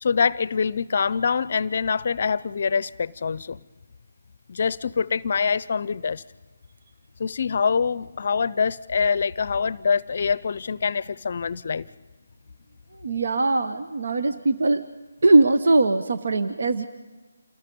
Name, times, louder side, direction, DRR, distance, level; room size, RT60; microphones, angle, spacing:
voice 1, 0.0-3.6 4.5-6.2 7.2-11.9, left 5 dB, 50° left, 21 dB, 0.6 m, -25 dB
voice 2, 13.0-14.8 15.2-16.8, right 2 dB, 65° right, 10 dB, 1.1 m, -20 dB
28.0 x 20.0 x 5.3 m, 1.3 s
figure-of-eight pair, 155°, 0 cm